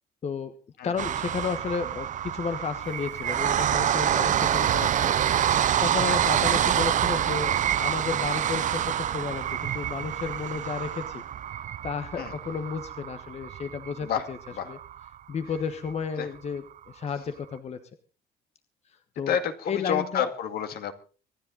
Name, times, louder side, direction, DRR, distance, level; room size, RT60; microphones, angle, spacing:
voice 1, 0.2-0.5 0.8-5.1 5.8-11.2 11.8-14.4 14.7-14.8 15.3-17.8 19.1-19.4 19.7-20.3, left 6 dB, 40° left, 9 dB, 1.2 m, -32 dB
sound 1, 1.0-15.1 15.5-15.6 15.9-16.0, right 10 dB, 50° right, 0.7 m, -27 dB
voice 2, 14.0-14.8 16.2-16.3 19.3-20.9, left 8 dB, 65° left, 8 dB, 2.2 m, -29 dB
25.5 x 10.0 x 4.0 m, 0.37 s
cardioid pair, 110°, 17 cm